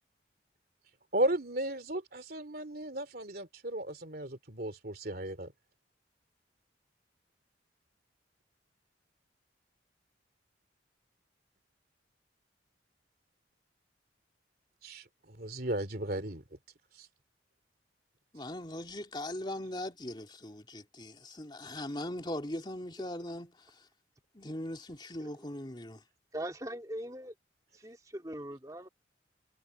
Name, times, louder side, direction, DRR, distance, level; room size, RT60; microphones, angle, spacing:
voice 1, 1.1-5.5 14.8-16.4 17.0-17.1, right 1 dB, 50° right, 3.1 m, -35 dB
voice 2, 18.3-23.6 24.3-26.0, left 1 dB, 25° left, 3.1 m, -40 dB
voice 3, 26.3-27.3 27.7-28.9, right 1 dB, 20° right, 2.5 m, -41 dB
head